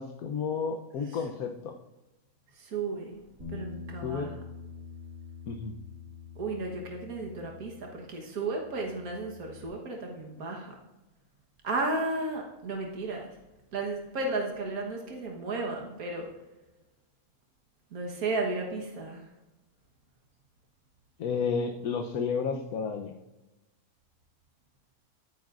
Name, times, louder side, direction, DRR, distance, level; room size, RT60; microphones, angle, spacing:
voice 1, 0.0-1.7 4.0-4.3 5.5-5.7 21.2-23.1, left 5 dB, 80° left, 4 dB, 1.3 m, -31 dB
voice 2, 2.5-3.2 3.5-4.3 6.4-10.7 11.6-13.4 13.7-16.3 17.9-19.3, right 3 dB, 80° right, 1 dB, 1.8 m, -34 dB
Bass guitar, 3.4-9.6, left 6 dB, 65° right, 2.8 m, -45 dB
14.5 x 9.5 x 2.5 m, 1.0 s
omnidirectional pair, 1.5 m